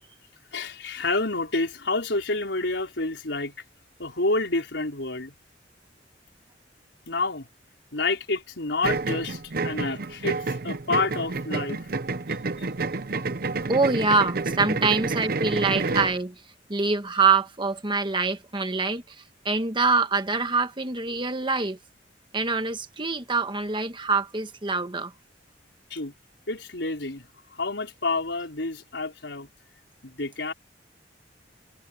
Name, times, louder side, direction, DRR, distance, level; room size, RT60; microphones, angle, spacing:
voice 1, 0.5-3.5 4.0-5.3 7.1-7.5 7.9-11.8 25.9-26.1 26.5-27.3 27.5-29.5 30.0-30.5, left 3 dB, 85° left, 4.7 m, -28 dB
sound 1, 8.8-16.2, right 3 dB, 55° right, 0.8 m, -29 dB
voice 2, 13.7-16.3 16.7-19.0 19.4-21.8 22.3-25.1, right 4 dB, 25° right, 1.5 m, -25 dB
head